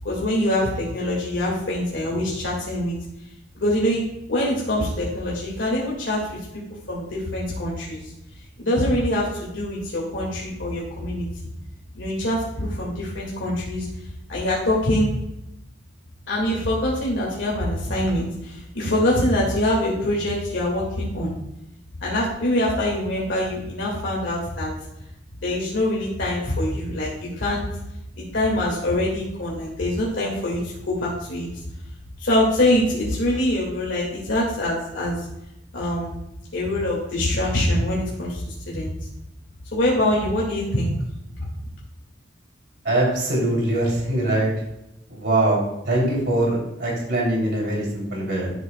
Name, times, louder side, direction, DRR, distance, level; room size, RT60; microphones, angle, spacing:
voice 1, 0.0-3.0 3.6-4.0 4.3-6.2 6.9-8.1 8.6-11.5 11.9-13.9 14.3-15.1 16.3-21.3 22.0-24.7 25.4-27.7 28.2-31.5 32.2-35.2 35.7-36.2 36.5-38.9 39.7-40.9 41.4-41.5, left 1 dB, 85° left, -4 dB, 1.9 m, -24 dB
voice 2, 42.8-44.5 45.1-48.5, right 1 dB, 65° right, -3 dB, 2.9 m, -22 dB
11.5 x 6.8 x 2.2 m, 0.86 s
head